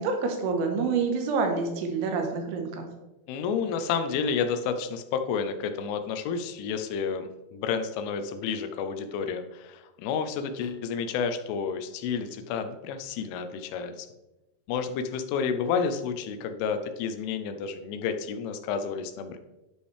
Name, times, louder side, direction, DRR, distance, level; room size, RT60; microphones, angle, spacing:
voice 1, 0.0-2.9, right 4 dB, 85° right, 3 dB, 3.5 m, -27 dB
voice 2, 3.3-14.1 14.7-19.4, left 6 dB, 90° left, 8 dB, 3.2 m, -30 dB
11.5 x 5.3 x 3.3 m, 1.0 s
omnidirectional pair, 5.4 m